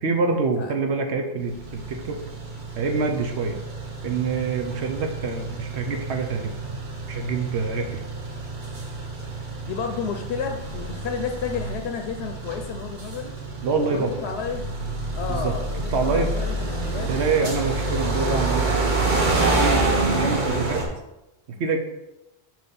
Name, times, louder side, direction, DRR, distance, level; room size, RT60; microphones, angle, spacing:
voice 1, 0.0-2.2 2.8-3.6 4.0-6.8 7.1-8.0 13.6-14.1 15.3-15.6 15.9-16.3 17.1-19.0 19.4-20.8 21.5-21.8, right 4 dB, 90° right, 4 dB, 1.1 m, -26 dB
sound 1, 1.4-20.9, right 2 dB, 50° right, 1.1 m, -28 dB
voice 2, 9.7-13.3 13.8-14.7 15.1-17.4, left 6 dB, 80° left, 5 dB, 0.8 m, -31 dB
6.1 x 3.0 x 5.5 m, 0.95 s
omnidirectional pair, 1.1 m